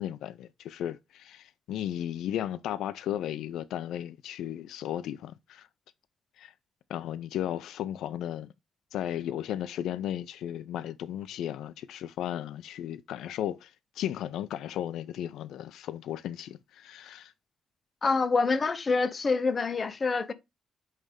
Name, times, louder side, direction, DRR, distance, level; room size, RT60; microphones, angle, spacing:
voice 1, 0.0-5.7 6.4-6.5 6.9-8.5 8.9-17.3, left 11 dB, 75° left, 0.3 m, -35 dB
voice 2, 18.0-20.3, left 4 dB, 25° left, 0.6 m, -26 dB
8.7 x 3.2 x 3.5 m
cardioid pair, 175°, 0 cm